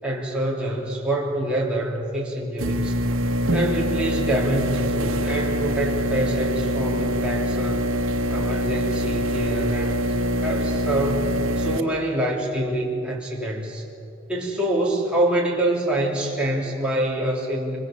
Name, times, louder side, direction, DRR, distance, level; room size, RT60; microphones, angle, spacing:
voice 1, 0.0-3.0 3.5-7.9 8.3-13.8 14.3-17.8, right 1 dB, 5° right, -4 dB, 3.3 m, -26 dB
sound 1, 2.6-11.8, equal, 85° right, 1.3 m, -24 dB
25.0 x 23.0 x 7.6 m, 2.6 s
head